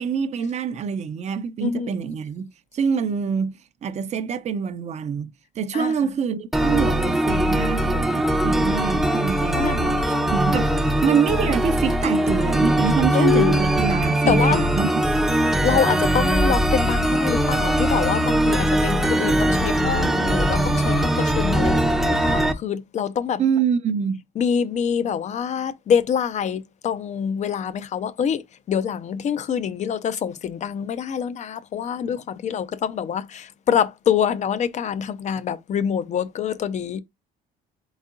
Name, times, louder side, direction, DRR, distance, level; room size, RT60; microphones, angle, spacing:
voice 1, 0.0-2.5 2.7-3.5 3.8-5.3 5.6-15.3 23.4-24.2, right 7 dB, 40° right, 0.6 m, -25 dB
voice 2, 1.6-2.0 5.7-5.9 9.5-9.9 13.1-13.6 14.3-14.7 15.6-23.4 24.4-28.4 28.7-37.0, left 8 dB, 45° left, 0.6 m, -25 dB
sound 1, 6.5-22.5, right 1 dB, ahead, 0.6 m, -21 dB
4.0 x 3.5 x 3.6 m
cardioid pair, 110°, 17 cm